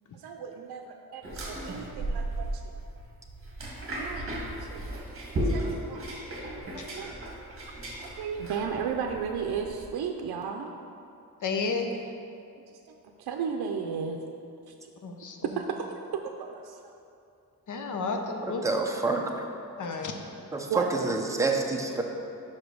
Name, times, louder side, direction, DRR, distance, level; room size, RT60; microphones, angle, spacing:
voice 1, 0.1-2.6 3.6-3.7 4.0-4.8 5.4-6.0 6.7-7.2 8.0-10.7 12.7-14.2 14.7-14.8 15.6-16.9 20.0-20.1 20.7-20.9, right 6 dB, 90° right, 3 dB, 0.5 m, -35 dB
sound 1, 1.2-9.9, right 1 dB, 35° right, 1.5 m, -35 dB
voice 2, 11.4-11.9 15.0-15.5 17.7-18.6 19.8-20.1, left 4 dB, 55° left, 4 dB, 0.8 m, -31 dB
voice 3, 18.6-19.3 20.5-22.0, right 3 dB, 10° right, 1 dB, 0.6 m, -27 dB
5.4 x 5.2 x 6.1 m, 2.6 s
wide cardioid pair, 135°, 37 cm